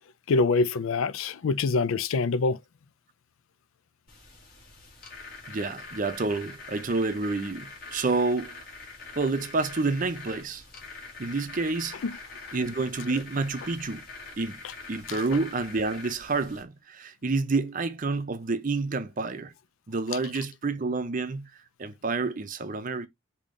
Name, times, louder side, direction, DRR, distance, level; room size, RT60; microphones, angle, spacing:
voice 1, 0.3-2.6 12.0-12.1 12.5-12.6 15.1-15.2, left 4 dB, 80° left, 0.4 m, -25 dB
sound 1, 4.1-16.6, left 3 dB, 45° left, 2.1 m, -44 dB
voice 2, 5.5-8.6 9.2-10.6 11.2-12.0 12.5-14.0 14.4-14.6 14.9-19.5 19.9-21.5 21.8-23.1, right 3 dB, 40° right, 0.5 m, -29 dB
5.2 x 2.8 x 3.7 m
head